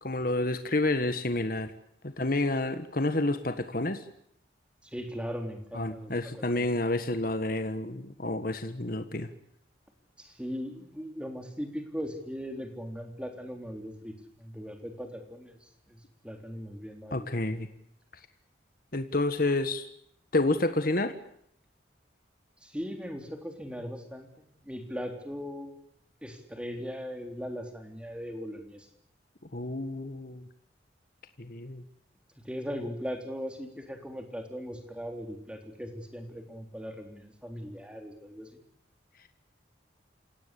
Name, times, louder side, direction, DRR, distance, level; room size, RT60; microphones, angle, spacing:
voice 1, 0.0-1.7 2.0-4.0 5.7-9.3 17.1-17.7 18.9-19.9 20.3-21.1 29.5-30.4 31.4-31.8, left 2 dB, 50° left, 9 dB, 1.5 m, -29 dB
voice 2, 4.8-6.7 10.2-17.3 22.6-25.7 26.2-28.9 32.4-38.6, equal, 5° right, 4 dB, 3.6 m, -39 dB
29.0 x 17.5 x 8.4 m, 0.71 s
head